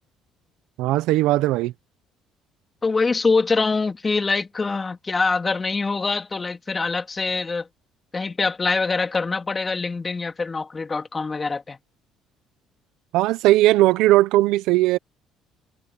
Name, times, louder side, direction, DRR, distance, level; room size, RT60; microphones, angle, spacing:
voice 1, 0.8-1.7 13.1-15.0, right 16 dB, 80° right, 1.1 m, -18 dB
voice 2, 2.8-7.7 8.1-11.8, left 4 dB, 30° left, 2.8 m, -24 dB
supercardioid pair, 70°, 0 cm